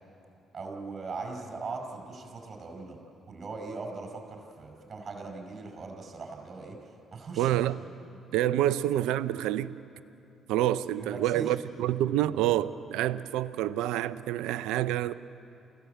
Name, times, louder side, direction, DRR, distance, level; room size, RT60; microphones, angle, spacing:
voice 1, 0.5-3.0 3.3-6.8 7.1-7.6 8.5-8.7 11.0-11.9, right 3 dB, 45° right, 5.5 m, -40 dB
voice 2, 7.4-7.8 8.3-9.7 10.5-15.1, right 13 dB, 80° right, 0.5 m, -27 dB
28.5 x 16.0 x 8.1 m
hypercardioid pair, 55°, 0 cm